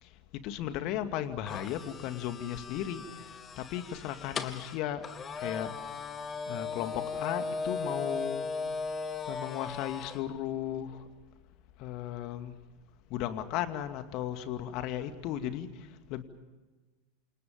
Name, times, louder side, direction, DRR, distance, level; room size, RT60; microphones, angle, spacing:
voice 1, 0.0-5.0 5.4-5.7 6.5-8.5 9.3-11.1 11.8-12.5 13.1-16.2, left 11 dB, 45° left, 9 dB, 2.3 m, -36 dB
sound 1, 1.5-10.2, left 4 dB, 25° left, 2.1 m, -38 dB
28.5 x 28.0 x 5.3 m, 1.2 s
figure-of-eight pair, 85°, 0 cm